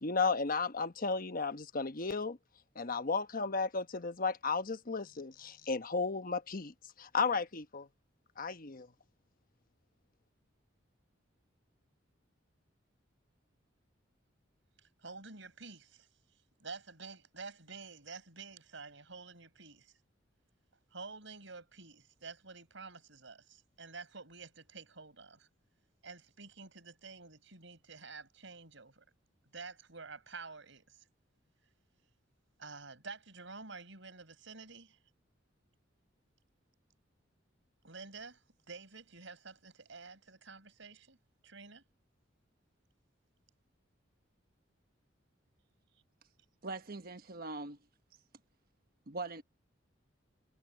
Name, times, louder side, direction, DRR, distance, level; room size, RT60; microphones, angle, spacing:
voice 1, 0.0-2.4 2.7-7.9 8.4-8.9, left 4 dB, 45° left, 1.1 m, -34 dB
voice 2, 15.0-16.1 16.6-20.0 20.9-25.5 26.0-29.0 29.5-31.1 32.6-35.0 37.8-41.2 41.4-41.8, right 4 dB, 70° right, 5.6 m, -49 dB
voice 3, 46.6-47.8 49.1-49.4, right 3 dB, 50° right, 1.2 m, -41 dB
head